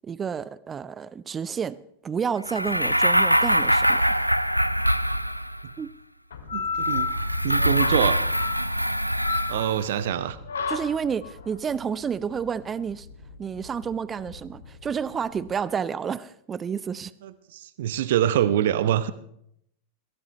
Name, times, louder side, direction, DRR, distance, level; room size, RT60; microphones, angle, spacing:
voice 1, 0.0-1.8 2.0-4.3 5.8-5.9 10.7-13.1 13.4-17.1, right 7 dB, 20° right, 0.5 m, -30 dB
sound 1, 2.5-5.7 6.8-9.9, equal, 90° right, 0.5 m, -23 dB
sound 2, 6.3-15.5, left 5 dB, 70° left, 2.2 m, -33 dB
voice 2, 6.5-7.1 7.4-8.2 9.5-10.4 17.2-19.1, right 11 dB, 55° right, 0.8 m, -25 dB
22.0 x 17.5 x 3.2 m
figure-of-eight pair, 90°, 0 cm